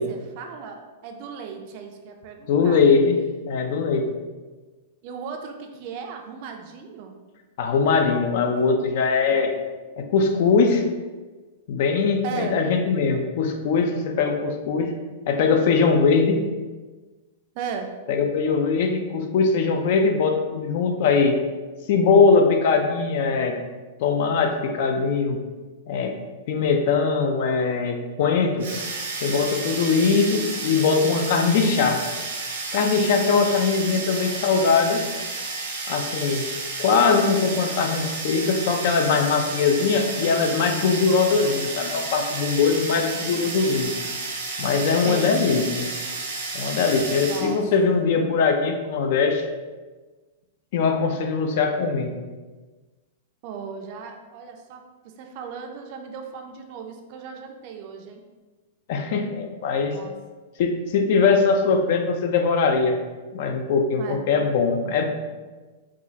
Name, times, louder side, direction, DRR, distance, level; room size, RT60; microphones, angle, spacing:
voice 1, 0.0-2.8 5.0-7.2 12.2-12.6 17.5-17.9 45.0-45.4 47.3-47.6 53.4-58.2 59.9-60.1 64.0-64.2, right 6 dB, 40° right, 4 dB, 0.4 m, -36 dB
voice 2, 2.5-3.2 3.5-4.1 7.6-9.6 10.0-10.8 11.7-14.9 15.3-16.4 18.1-21.4 21.9-23.6 24.0-25.4 25.9-26.2 26.5-28.7 29.2-32.0 32.7-35.1 35.9-36.5 36.8-43.9 44.6-45.9 46.5-49.4 50.7-52.1 58.9-60.0 60.6-63.0 63.3-65.0, left 5 dB, 50° left, 5 dB, 0.4 m, -21 dB
sound 1, 28.6-47.6, right 3 dB, 90° right, 1.0 m, -32 dB
4.8 x 2.3 x 2.7 m, 1.3 s
supercardioid pair, 160°, 0 cm